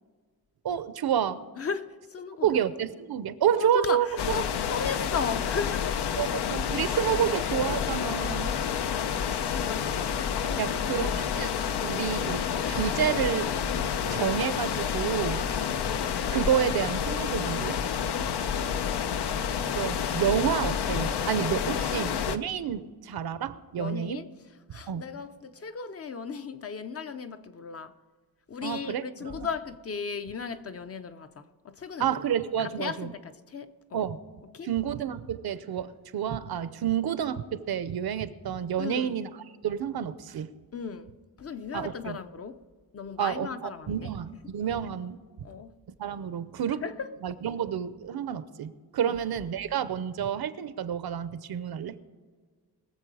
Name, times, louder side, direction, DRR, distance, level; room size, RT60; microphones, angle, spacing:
voice 1, 0.6-1.4 2.4-4.1 6.2-8.5 10.6-11.5 11.8-13.5 14.1-15.5 16.3-17.8 19.7-24.2 24.9-25.0 28.6-29.5 32.0-33.1 33.9-34.2 34.6-39.3 39.6-40.5 41.7-42.2 43.2-45.2 46.0-46.8 47.2-52.0, right 9 dB, 70° right, 0.7 m, -29 dB
voice 2, 1.6-2.6 3.6-6.1 8.4-10.0 10.5-11.1 15.6-15.8 18.5-18.8 21.7-22.0 23.8-24.3 24.7-27.9 28.5-32.2 32.6-34.1 34.4-34.7 38.8-39.1 40.7-42.6 42.9-44.1 45.4-45.7 46.7-47.1 49.0-49.2, left 5 dB, 40° left, 0.6 m, -36 dB
sound 1, 4.2-22.4, left 8 dB, 85° left, 0.8 m, -29 dB
21.5 x 7.5 x 4.8 m
wide cardioid pair, 175°, 39 cm